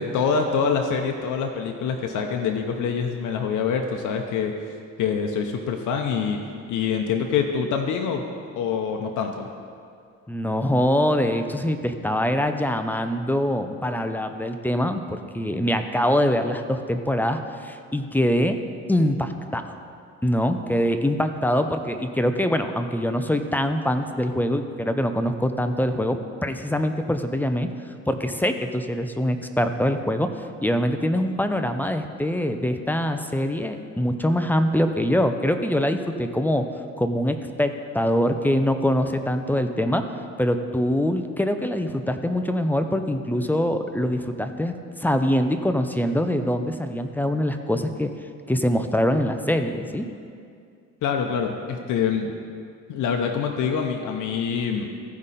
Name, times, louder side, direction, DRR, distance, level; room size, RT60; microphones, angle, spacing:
voice 1, 0.0-4.5 5.0-6.4 6.7-8.2 8.6-9.5 51.0-52.4 52.9-54.9, left 6 dB, 80° left, 3 dB, 0.8 m, -25 dB
voice 2, 10.3-18.6 18.9-19.8 20.2-27.7 28.1-36.6 37.0-40.0 40.4-44.7 45.0-48.1 48.5-50.0, equal, 5° left, 7 dB, 0.6 m, -24 dB
15.0 x 5.2 x 4.2 m, 2.3 s
cardioid pair, 90°, 30 cm